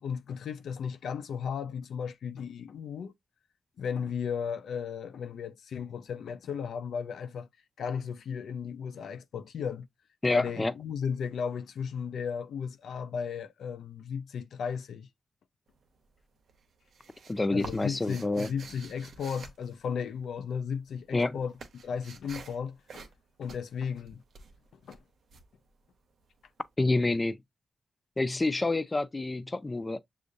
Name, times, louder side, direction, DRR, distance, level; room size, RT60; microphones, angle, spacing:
voice 1, 0.0-3.1 3.8-7.5 7.8-9.9 10.3-15.1 17.5-23.1 23.4-24.2 24.8-25.0, left 7 dB, 85° left, 0.5 m, -35 dB
voice 2, 10.2-10.7 17.3-18.5 21.1-21.4 26.8-27.4 28.2-30.0, left 2 dB, 25° left, 0.4 m, -28 dB
sound 1, 15.7-16.2 16.5-20.5 20.8-26.4, right 4 dB, 75° right, 0.9 m, -49 dB
6.6 x 2.4 x 2.5 m
cardioid pair, 65°, 0 cm